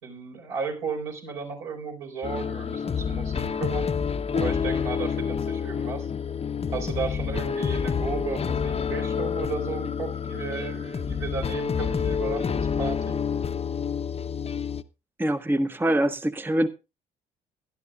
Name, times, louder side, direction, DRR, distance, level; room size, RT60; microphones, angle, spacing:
voice 1, 0.0-3.9 4.3-6.1 6.7-13.2, right 5 dB, 75° right, 4.6 m, -34 dB
sound 1, 2.2-14.8, left 6 dB, 30° left, 0.8 m, -28 dB
voice 2, 15.2-16.7, right 1 dB, 10° right, 0.9 m, -24 dB
16.5 x 12.0 x 2.5 m
hypercardioid pair, 50°, 19 cm